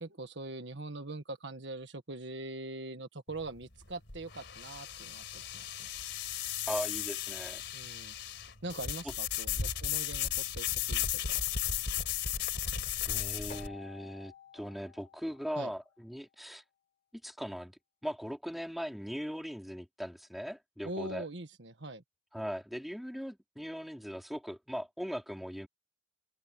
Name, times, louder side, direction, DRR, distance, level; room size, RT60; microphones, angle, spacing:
voice 1, 0.0-5.9 7.7-8.1 8.6-11.4 15.5-15.7 20.8-22.0, right 2 dB, 70° right, 1.6 m, -42 dB
sound 1, 3.3-13.7, left 9 dB, 65° left, 4.3 m, -35 dB
voice 2, 6.7-7.6 13.1-16.6 17.2-17.7 18.0-21.2 22.3-25.7, equal, ahead, 3.9 m, -39 dB
Keyboard (musical), 13.5-16.1, left 6 dB, 35° left, 6.6 m, -52 dB
open air
head